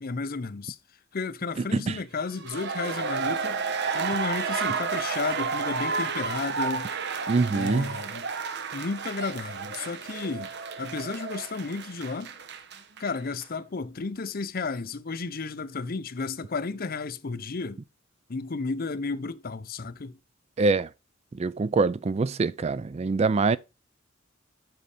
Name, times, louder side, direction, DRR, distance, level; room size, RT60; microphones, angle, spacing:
voice 1, 0.0-0.8 1.1-3.6 3.9-6.9 7.5-8.3 8.7-10.5 10.8-12.3 13.0-17.8 18.3-20.2, left 4 dB, 50° left, 0.6 m, -33 dB
sound 1, 2.3-13.1 13.4-13.5, right 5 dB, 55° right, 0.8 m, -31 dB
voice 2, 7.3-7.9 20.6-20.9 21.3-23.6, right 3 dB, 30° right, 0.3 m, -24 dB
7.7 x 5.4 x 4.9 m
head